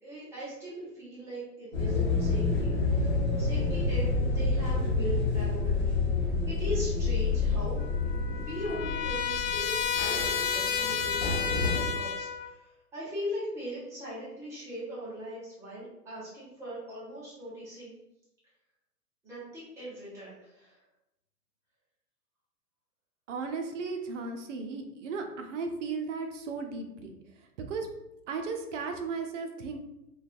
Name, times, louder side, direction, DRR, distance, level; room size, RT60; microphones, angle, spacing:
voice 1, 0.0-7.9 8.3-17.9 19.2-20.8, equal, 5° right, -9 dB, 0.5 m, -40 dB
sound 1, 1.7-11.8, left 3 dB, 25° left, 0.8 m, -29 dB
Trumpet, 7.8-12.5, left 7 dB, 85° left, 0.6 m, -31 dB
voice 2, 23.3-27.1 27.6-27.9 28.3-29.8, right 4 dB, 50° right, 4 dB, 0.5 m, -35 dB
3.1 x 2.2 x 2.4 m, 0.89 s
hypercardioid pair, 125°, 49 cm